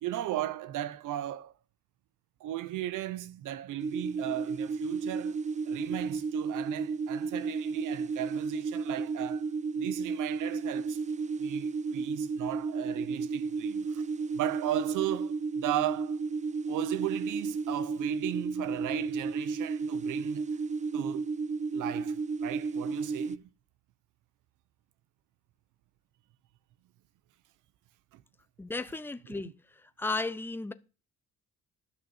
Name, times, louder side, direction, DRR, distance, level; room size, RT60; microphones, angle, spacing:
voice 1, 0.0-1.5 2.4-9.5 9.8-11.0 11.4-14.0 14.3-16.2 16.7-20.5 20.9-21.3 21.7-23.5 28.1-28.2 29.4-29.5, right 13 dB, 85° right, 0.8 m, -36 dB
sound 1, 3.8-23.4, right 4 dB, 25° right, 0.4 m, -33 dB
voice 2, 28.6-29.5 30.0-30.7, left 3 dB, 5° left, 0.7 m, -34 dB
11.0 x 6.4 x 7.0 m
cardioid pair, 90°, 30 cm